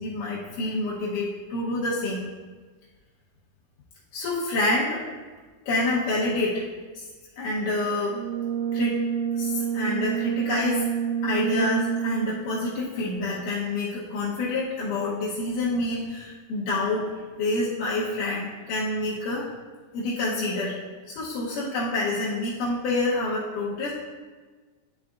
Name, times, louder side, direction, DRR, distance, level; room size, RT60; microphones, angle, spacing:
voice 1, 0.0-2.3 4.1-5.0 5.7-6.7 6.9-7.1 7.4-8.2 8.7-9.0 9.3-10.8 11.2-19.5 19.9-20.8 21.1-23.9, left 2 dB, 75° left, -7 dB, 2.0 m, -27 dB
Brass instrument, 8.1-12.5, right 8 dB, 70° right, 2.6 m, -28 dB
10.5 x 5.0 x 2.4 m, 1.4 s
omnidirectional pair, 4.8 m